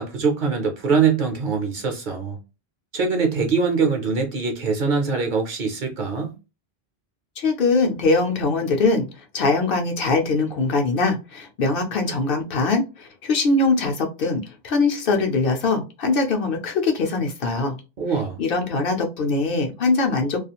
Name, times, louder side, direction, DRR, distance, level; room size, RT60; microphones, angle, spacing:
voice 1, 0.0-2.4 2.9-6.3 18.0-18.4, right 5 dB, 55° right, 0.7 m, -23 dB
voice 2, 7.4-9.1 9.3-17.8 18.4-20.4, left 3 dB, 65° left, 0.8 m, -22 dB
2.4 x 2.4 x 2.8 m
omnidirectional pair, 1.1 m